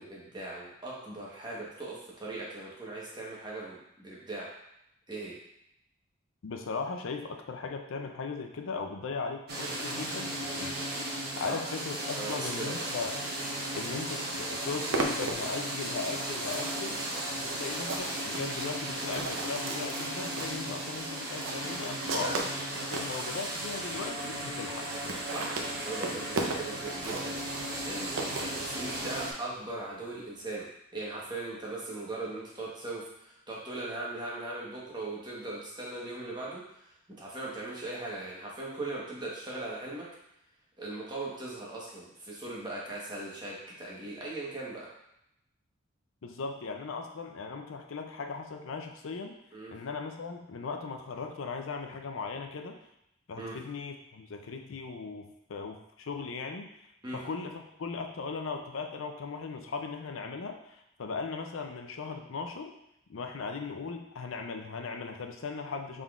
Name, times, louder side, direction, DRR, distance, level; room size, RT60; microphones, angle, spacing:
voice 1, 0.0-4.5 5.1-5.4 11.4-11.6 12.1-12.8 22.2-22.3 25.3-25.5 25.9-27.4 27.8-30.7 30.9-36.6 37.2-40.1 40.8-44.9 49.5-49.7 53.4-53.5 57.0-57.2, right 2 dB, 20° right, -5 dB, 1.1 m, -39 dB
voice 2, 6.4-10.8 11.4-13.1 13.8-17.1 17.3-22.4 22.9-24.9 46.2-49.3 49.7-52.8 53.3-56.8 57.1-62.7 63.1-66.0, left 4 dB, 80° left, 4 dB, 0.5 m, -38 dB
sound 1, 9.5-29.3, right 1 dB, 50° right, 0.9 m, -36 dB
sound 2, 14.5-23.2 23.8-23.9 24.1-24.2 24.4-24.5 24.7-29.1, right 3 dB, 85° right, 0.6 m, -37 dB
5.5 x 3.7 x 2.4 m, 0.80 s
head